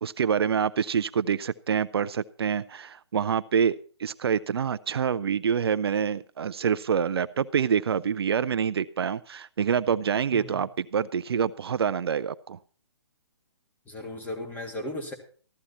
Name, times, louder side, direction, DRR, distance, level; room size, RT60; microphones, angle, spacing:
voice 1, 0.0-12.6, right 7 dB, 65° right, 15 dB, 0.5 m, -26 dB
voice 2, 10.3-10.6 13.9-15.1, left 1 dB, 10° left, 3 dB, 2.6 m, -36 dB
14.5 x 12.5 x 4.3 m, 0.41 s
hypercardioid pair, 140°, 14 cm